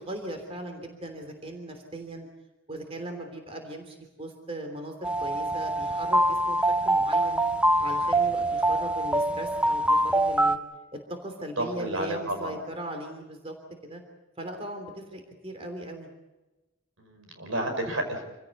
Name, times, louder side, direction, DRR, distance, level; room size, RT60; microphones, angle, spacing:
voice 1, 0.0-2.3 2.7-7.4 7.8-10.6 11.1-13.5 13.9-14.0 14.4-16.1, right 1 dB, 30° right, 5 dB, 3.3 m, -38 dB
sound 1, 5.0-10.6, right 1 dB, 5° right, 0.9 m, -24 dB
voice 2, 11.6-12.6 17.0-18.2, right 1 dB, 80° right, 5 dB, 5.6 m, -31 dB
27.5 x 16.5 x 8.5 m, 1.1 s
head